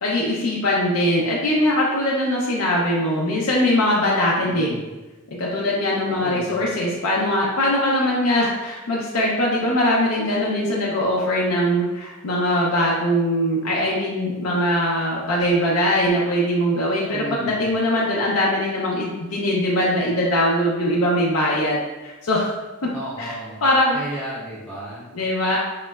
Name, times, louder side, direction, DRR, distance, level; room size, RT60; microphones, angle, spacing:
voice 1, 0.0-4.7 5.3-22.6 23.2-23.3 23.6-24.0 25.1-25.6, left 1 dB, 70° left, -4 dB, 0.4 m, -21 dB
voice 2, 4.4-4.9 6.0-6.7 17.1-17.7 22.9-23.7 23.9-25.1, equal, 5° left, -11 dB, 0.5 m, -34 dB
3.7 x 2.0 x 2.2 m, 1.1 s
head